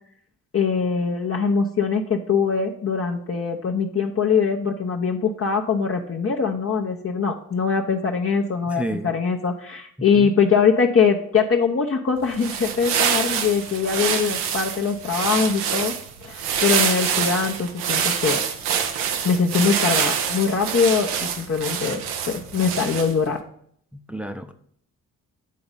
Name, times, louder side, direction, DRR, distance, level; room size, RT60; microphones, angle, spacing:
voice 1, 0.5-15.9 16.2-18.4 19.2-23.4, left 5 dB, 35° left, 0 dB, 0.9 m, -22 dB
voice 2, 8.7-9.1 10.1-10.3 23.9-24.5, right 1 dB, 5° right, 7 dB, 0.7 m, -31 dB
sound 1, 12.2-23.3, right 7 dB, 85° right, 0.8 m, -25 dB
8.5 x 3.9 x 5.4 m, 0.66 s
hypercardioid pair, 45°, 39 cm